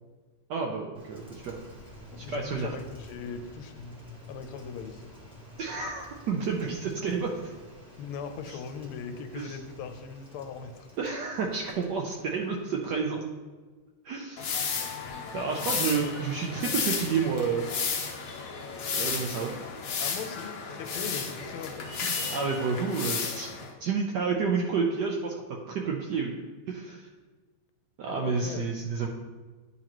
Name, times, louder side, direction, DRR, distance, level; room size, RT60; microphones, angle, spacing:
voice 1, 0.5-1.6 2.3-2.7 5.6-7.3 9.3-9.5 11.0-13.2 14.0-14.5 15.3-17.7 18.9-19.6 22.3-23.5 23.8-26.3 26.7-27.0 28.0-29.1, right 5 dB, 70° right, 0 dB, 1.0 m, -30 dB
Rain, 0.9-13.4, left 1 dB, 5° right, 1.0 m, -50 dB
voice 2, 2.1-4.0 4.3-5.0 8.0-10.9 15.4-16.3 20.0-22.0 28.1-28.7, left 6 dB, 85° left, 7 dB, 1.5 m, -40 dB
sound 1, 14.4-23.7, left 5 dB, 65° left, 0.8 m, -33 dB
10.0 x 4.1 x 3.0 m, 1.3 s
omnidirectional pair, 2.4 m